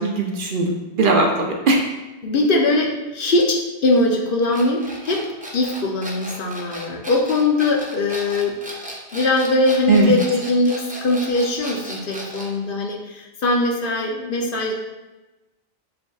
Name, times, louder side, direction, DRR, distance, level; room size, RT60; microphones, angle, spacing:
voice 1, 0.0-1.8 9.9-10.1, right 3 dB, 60° right, 1 dB, 0.7 m, -19 dB
voice 2, 2.2-5.2 5.5-8.5 9.1-14.7, left 2 dB, 60° left, -1 dB, 0.8 m, -21 dB
sound 1, 4.5-12.6, right 1 dB, 10° right, 0.4 m, -35 dB
7.4 x 2.6 x 2.3 m, 1.1 s
omnidirectional pair, 1.1 m